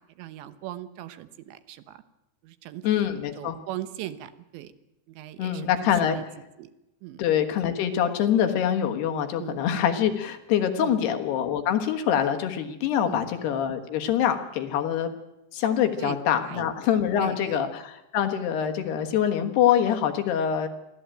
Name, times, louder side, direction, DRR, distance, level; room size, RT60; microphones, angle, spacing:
voice 1, 0.2-2.0 2.4-3.0 3.4-4.7 5.1-6.3 6.6-6.7 7.0-7.2 9.4-9.6 10.8-11.0 13.1-13.3 16.0-16.7 17.2-17.6, right 13 dB, 80° right, 12 dB, 3.3 m, -39 dB
voice 2, 2.8-3.6 5.4-6.2 7.2-15.1 15.5-20.7, left 9 dB, 70° left, 6 dB, 3.2 m, -25 dB
23.0 x 15.0 x 8.9 m, 0.91 s
omnidirectional pair, 5.2 m